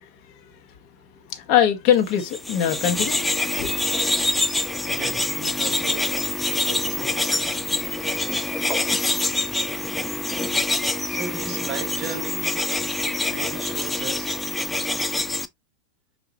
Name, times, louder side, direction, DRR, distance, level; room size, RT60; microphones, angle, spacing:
voice 1, 0.0-3.8, left 9 dB, 40° left, 1.0 m, -24 dB
sound 1, 2.2-15.5, left 2 dB, 5° left, 0.4 m, -25 dB
voice 2, 4.8-6.2 6.5-7.3 11.1-12.8 13.2-14.4, right 5 dB, 30° right, 1.0 m, -36 dB
5.6 x 2.6 x 2.8 m
figure-of-eight pair, 90°, 0 cm